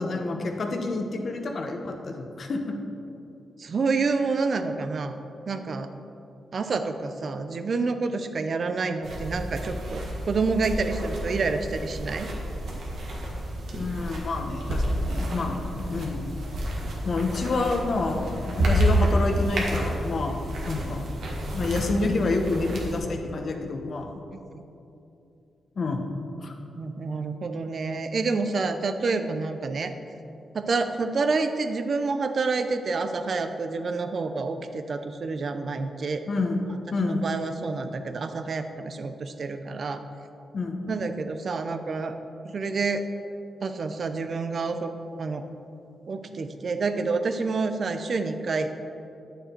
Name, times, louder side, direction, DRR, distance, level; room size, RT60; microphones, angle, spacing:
voice 1, 0.0-2.8 13.7-16.4 17.0-20.4 20.7-21.0 21.5-24.2 25.8-26.0 26.4-26.5 36.3-36.6 36.9-37.2 40.5-40.9, left 3 dB, 55° left, 4 dB, 1.0 m, -28 dB
voice 2, 3.6-5.2 5.5-5.9 6.5-12.3 24.5-24.6 26.7-29.9 30.5-36.2 37.2-40.0 40.9-42.2 42.4-43.0 43.6-44.9 45.2-45.4 46.1-48.7, right 4 dB, 55° right, 8 dB, 0.6 m, -28 dB
sound 1, 9.0-23.0, equal, 75° right, 1.7 m, -29 dB
9.3 x 6.7 x 4.5 m, 2.7 s
cardioid pair, 85°, 0 cm